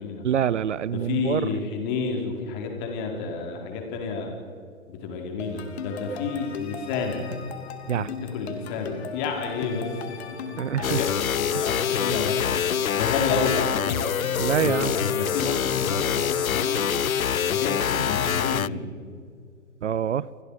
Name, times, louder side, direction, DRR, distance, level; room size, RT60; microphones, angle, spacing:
voice 1, 0.2-1.4 7.9-8.1 10.6-11.0 11.5-11.6 14.4-15.0 19.8-20.3, right 9 dB, 60° right, 21 dB, 0.7 m, -25 dB
voice 2, 0.9-4.3 4.9-7.3 7.9-10.2 10.7-14.0 14.6-17.0 17.3-18.8, left 5 dB, 35° left, 2 dB, 5.0 m, -30 dB
sound 1, 5.4-17.7, left 5 dB, 50° left, 3.0 m, -38 dB
sound 2, 10.8-18.7, left 8 dB, 85° left, 0.6 m, -25 dB
30.0 x 24.0 x 5.2 m, 2.2 s
figure-of-eight pair, 125°, 41 cm